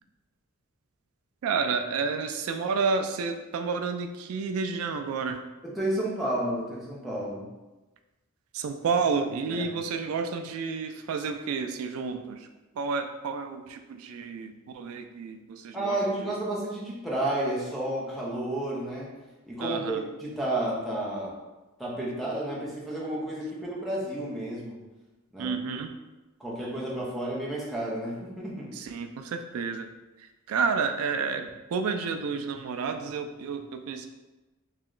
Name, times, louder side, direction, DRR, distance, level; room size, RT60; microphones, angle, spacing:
voice 1, 1.4-5.4 8.5-12.5 12.8-16.0 19.6-20.0 25.4-25.9 28.7-29.9 30.2-34.1, right 5 dB, 85° right, 7 dB, 0.3 m, -30 dB
voice 2, 5.6-7.5 9.5-9.7 15.7-19.1 19.5-21.3 21.8-24.8 25.3-25.5 26.4-28.7, right 1 dB, ahead, -7 dB, 0.8 m, -31 dB
3.2 x 2.9 x 3.7 m, 1.1 s
head